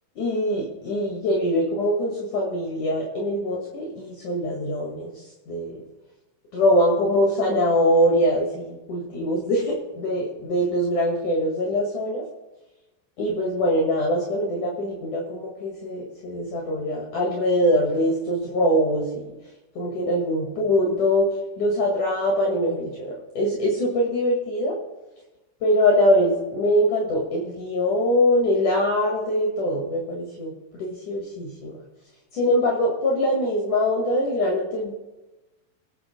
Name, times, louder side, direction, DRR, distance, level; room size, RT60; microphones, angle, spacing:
voice 1, 0.2-5.8 6.5-12.2 13.2-19.3 19.7-21.3 21.6-24.8 25.6-31.8 32.3-34.9, equal, 55° left, -2 dB, 3.1 m, -23 dB
27.5 x 9.2 x 2.2 m, 1.1 s
omnidirectional pair, 4.4 m